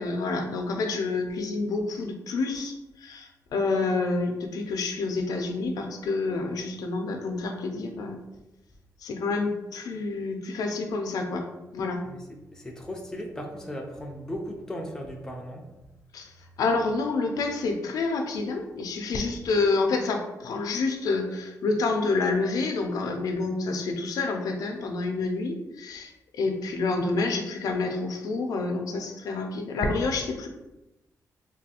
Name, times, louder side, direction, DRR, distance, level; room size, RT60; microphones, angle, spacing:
voice 1, 0.0-8.2 9.0-11.4 11.7-12.0 16.1-16.3 16.6-30.5, left 3 dB, 75° left, 3 dB, 0.4 m, -28 dB
voice 2, 12.5-15.7, equal, 10° left, 1 dB, 0.3 m, -37 dB
3.2 x 2.3 x 2.8 m, 0.97 s
wide cardioid pair, 175°, 6 cm